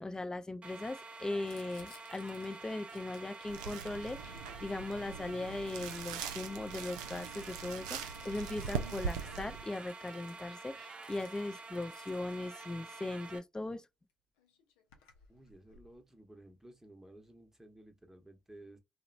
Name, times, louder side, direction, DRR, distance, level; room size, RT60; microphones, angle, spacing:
voice 1, 0.0-13.8, left 2 dB, 20° left, 0.4 m, -39 dB
sound 1, 0.6-13.4, right 3 dB, 35° right, 0.6 m, -49 dB
Crumpling crinkling, 1.4-5.5 6.2-13.3 14.1-14.2 14.4-16.0, left 5 dB, 80° left, 0.6 m, -63 dB
sound 2, 3.5-9.6, right 7 dB, 85° right, 0.3 m, -41 dB
voice 2, 15.3-18.8, right 1 dB, 10° right, 0.9 m, -55 dB
2.9 x 2.1 x 2.5 m
hypercardioid pair, 40°, 3 cm